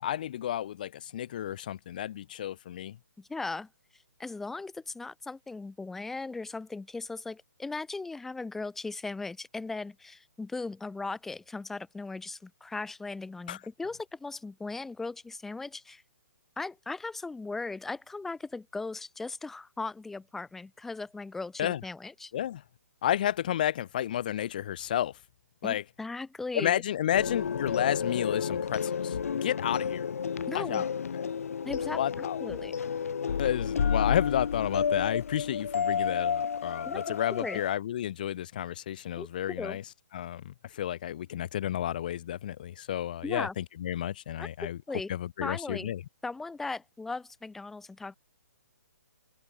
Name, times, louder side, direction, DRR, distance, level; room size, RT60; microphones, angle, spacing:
voice 1, 0.0-3.0 13.5-13.6 21.6-21.8 22.3-22.6 23.0-25.1 25.6-25.8 26.5-30.1 30.5-30.9 31.1-31.3 32.0-32.4 33.4-39.8 40.1-44.8 45.1-46.0, left 11 dB, 30° left, 0.7 m, -31 dB
voice 2, 3.2-3.7 4.2-16.0 16.6-22.3 25.6-26.8 30.5-30.8 31.6-32.8 36.9-37.6 39.2-39.8 43.2-43.5 44.4-45.1 45.4-45.9 46.2-48.2, left 3 dB, 5° left, 3.6 m, -38 dB
sound 1, 27.1-37.8, left 7 dB, 60° left, 1.2 m, -31 dB
hypercardioid pair, 170°, 9 cm